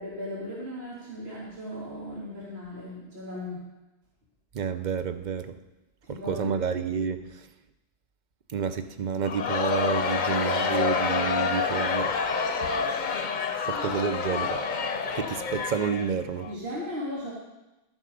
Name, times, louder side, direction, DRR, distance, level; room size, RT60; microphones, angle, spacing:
voice 1, 0.0-3.7 6.0-6.6 13.7-14.3 16.5-17.3, left 1 dB, 80° right, -6 dB, 2.4 m, -37 dB
voice 2, 4.5-5.5 6.1-7.5 8.5-12.2 13.7-14.6 15.1-16.5, right 6 dB, 50° right, 10 dB, 0.7 m, -29 dB
Crowd, 9.2-16.5, left 5 dB, 50° left, 0.8 m, -28 dB
12.0 x 7.2 x 5.2 m, 1.0 s
omnidirectional pair, 1.0 m